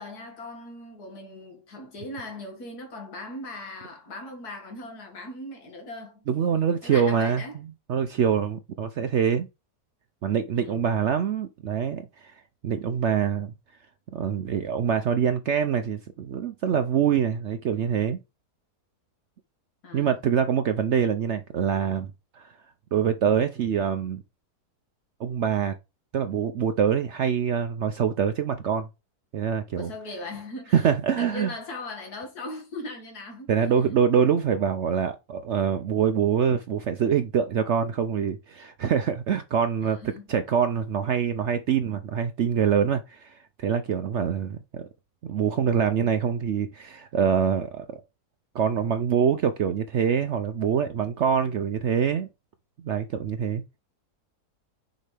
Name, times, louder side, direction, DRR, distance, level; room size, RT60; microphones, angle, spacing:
voice 1, 0.0-6.3 6.8-7.6 10.5-10.8 19.8-20.2 29.8-30.9 31.2-33.5 39.8-40.4 51.4-51.6, left 2 dB, 65° left, 2.4 m, -39 dB
voice 2, 6.3-7.6 7.9-9.5 10.2-12.3 12.6-13.5 14.1-18.2 19.9-22.1 22.3-22.5 22.9-24.2 25.2-25.7 26.1-28.9 29.3-29.9 30.7-31.5 33.5-40.0 40.3-44.9 45.2-48.0 48.5-52.3 52.8-53.6, right 7 dB, 70° right, 0.7 m, -25 dB
6.4 x 5.0 x 3.4 m
omnidirectional pair, 1.8 m